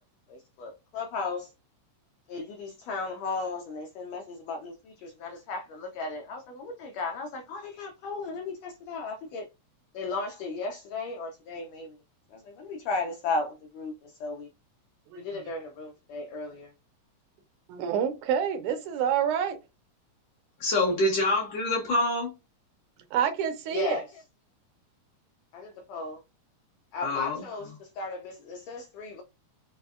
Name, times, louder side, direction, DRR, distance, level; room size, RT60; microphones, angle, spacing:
voice 1, 0.3-1.5 2.3-9.5 9.9-12.0 12.3-14.5 15.1-16.7 21.0-21.1 23.7-24.2 25.5-26.2 26.9-29.2, left 3 dB, 90° left, 1.5 m, -35 dB
voice 2, 17.7-19.6 23.1-24.0, right 8 dB, 80° right, 2.1 m, -27 dB
voice 3, 20.6-22.3 27.0-27.4, left 2 dB, 65° left, 1.7 m, -26 dB
5.0 x 2.0 x 2.4 m
omnidirectional pair, 3.6 m